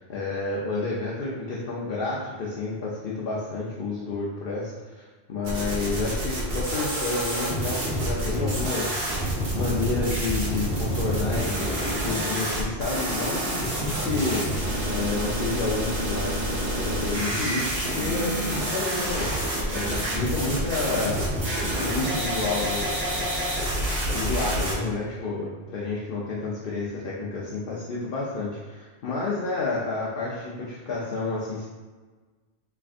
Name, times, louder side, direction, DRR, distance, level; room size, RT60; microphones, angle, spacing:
voice 1, 0.0-9.0 9.5-14.4 14.9-21.1 21.6-23.2 24.1-31.7, left 3 dB, 65° left, -6 dB, 0.8 m, -30 dB
sound 1, 5.4-24.7, right 1 dB, 75° right, 1.2 m, -28 dB
3.6 x 3.4 x 2.5 m, 1.3 s
omnidirectional pair, 1.0 m